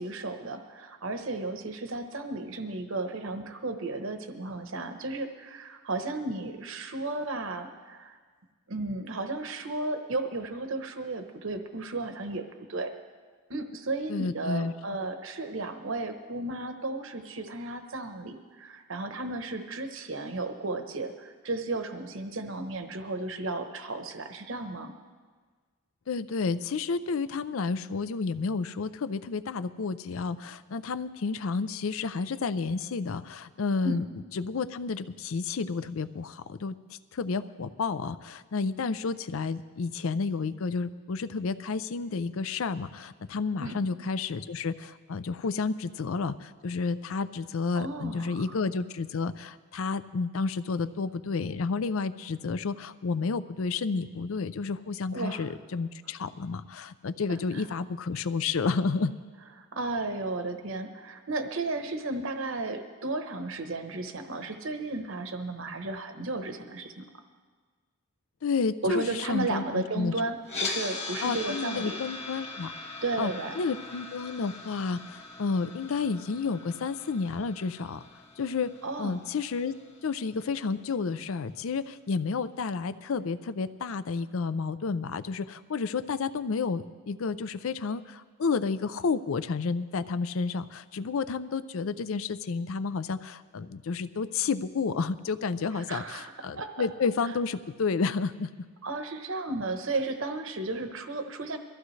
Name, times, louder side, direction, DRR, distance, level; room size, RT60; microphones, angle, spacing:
voice 1, 0.0-8.2 8.7-12.4 12.7-12.9 13.5-24.9 33.8-34.0 43.6-43.8 47.7-48.4 55.1-55.4 57.5-57.6 59.7-67.0 68.8-72.0 73.0-73.5 78.8-79.2 95.8-96.7 98.8-101.6, right 2 dB, 65° right, 6 dB, 1.0 m, -34 dB
voice 2, 14.1-14.7 26.1-34.1 34.3-36.8 37.1-59.1 68.4-70.1 71.2-72.7 73.2-78.0 78.4-78.7 79.0-79.7 80.0-98.5, left 4 dB, 70° left, 14 dB, 0.5 m, -31 dB
sound 1, 70.4-80.5, left 3 dB, 30° left, 1.7 m, -40 dB
22.5 x 14.5 x 3.2 m, 1.5 s
head